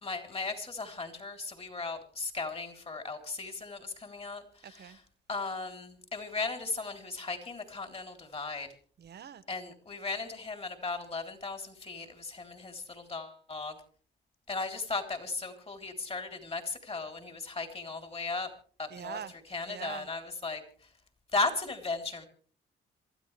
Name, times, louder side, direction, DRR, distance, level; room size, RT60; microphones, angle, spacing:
voice 1, 0.0-5.0 5.3-8.7 9.5-13.7 14.5-18.5 18.8-19.2 19.5-20.6 21.3-22.2, left 3 dB, 30° left, 3.5 m, -36 dB
voice 2, 4.6-5.0 9.0-9.4 18.9-19.3 19.7-20.1, right 8 dB, 55° right, 1.2 m, -43 dB
26.5 x 13.0 x 3.4 m
cardioid pair, 90°, 20 cm